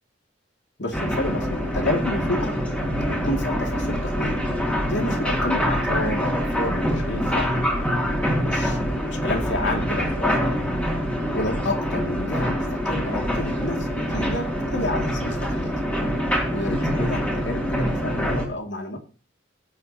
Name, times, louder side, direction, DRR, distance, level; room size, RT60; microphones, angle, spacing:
voice 1, 0.8-2.6 3.0-4.4 4.9-7.6 8.3-10.6 11.3-15.7 16.5-19.0, left 2 dB, 65° left, 4 dB, 2.3 m, -30 dB
sound 1, 0.9-18.5, equal, 5° left, 2.6 m, -25 dB
17.5 x 8.4 x 2.8 m, 0.37 s
head